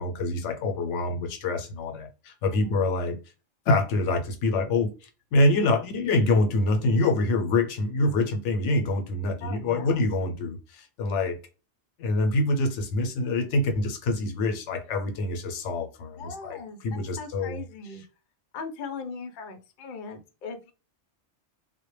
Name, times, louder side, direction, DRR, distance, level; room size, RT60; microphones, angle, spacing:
voice 1, 0.0-3.2 3.7-4.9 5.3-11.4 12.0-16.6 16.8-17.6, left 2 dB, 85° left, 0.9 m, -25 dB
voice 2, 2.5-2.8 9.4-10.1 16.1-18.0 18.5-20.7, left 4 dB, 60° left, 0.6 m, -39 dB
2.1 x 2.1 x 3.0 m
omnidirectional pair, 1.2 m